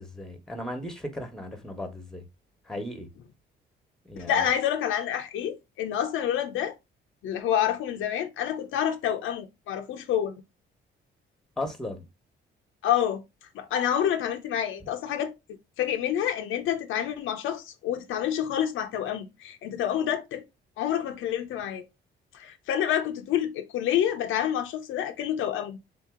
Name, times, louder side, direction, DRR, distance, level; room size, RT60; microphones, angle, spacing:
voice 1, 0.0-2.2 2.7-3.1 4.0-4.5 11.6-12.0, left 1 dB, ahead, 1.2 m, -36 dB
voice 2, 4.3-6.7 7.2-10.3 12.8-13.2 13.5-15.3 15.8-20.4 20.8-21.8 22.3-25.8, left 10 dB, 85° left, 0.7 m, -28 dB
3.8 x 2.8 x 3.7 m
cardioid pair, 90°, 20 cm